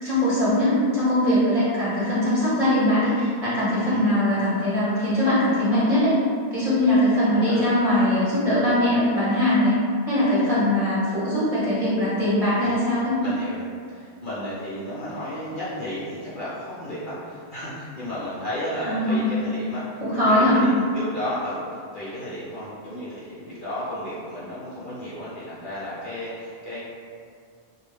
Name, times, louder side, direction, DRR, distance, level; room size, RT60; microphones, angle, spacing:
voice 1, 0.0-6.1 6.5-9.7 10.1-13.2 18.8-19.3 20.0-20.6, left 1 dB, 35° right, -11 dB, 0.7 m, -21 dB
voice 2, 13.2-26.8, left 1 dB, 60° left, -10 dB, 0.6 m, -33 dB
2.2 x 2.1 x 3.1 m, 2.2 s
omnidirectional pair, 1.2 m